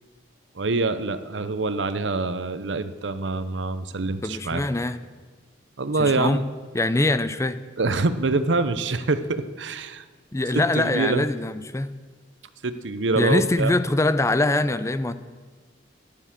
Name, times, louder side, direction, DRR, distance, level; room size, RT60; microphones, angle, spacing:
voice 1, 0.5-4.6 5.8-6.4 7.8-10.0 10.5-11.3 12.6-13.7, right 3 dB, 80° right, 12 dB, 0.8 m, -25 dB
voice 2, 4.2-5.0 6.0-6.4 6.7-7.6 10.3-11.9 13.1-15.1, left 2 dB, 15° left, 13 dB, 0.5 m, -23 dB
12.5 x 10.5 x 7.4 m, 1.4 s
head